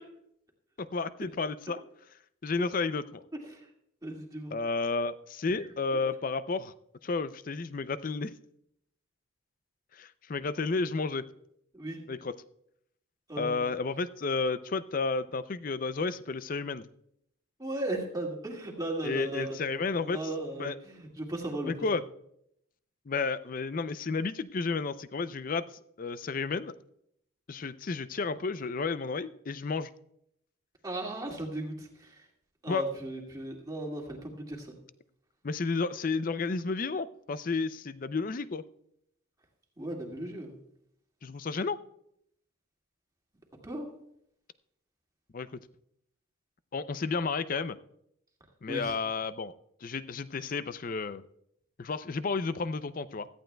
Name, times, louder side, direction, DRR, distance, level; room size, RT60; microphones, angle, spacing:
voice 1, 0.8-1.8 2.4-3.2 4.5-6.7 7.0-8.3 9.9-11.3 12.1-12.3 13.4-16.9 19.0-20.2 20.6-20.8 21.7-22.0 23.1-25.7 26.0-26.7 27.5-29.9 32.7-32.8 35.4-38.6 41.2-41.8 45.3-45.5 46.7-47.8 48.6-49.5 49.8-51.2 51.8-53.3, left 4 dB, 40° left, 14 dB, 0.4 m, -32 dB
voice 2, 3.3-3.7 4.0-4.5 5.6-6.0 11.7-12.0 13.3-13.7 17.6-21.9 30.8-32.3 32.6-34.8 39.8-40.6 43.6-43.9 48.7-49.0, right 1 dB, 15° right, -1 dB, 2.0 m, -37 dB
16.5 x 14.0 x 2.3 m, 0.74 s
head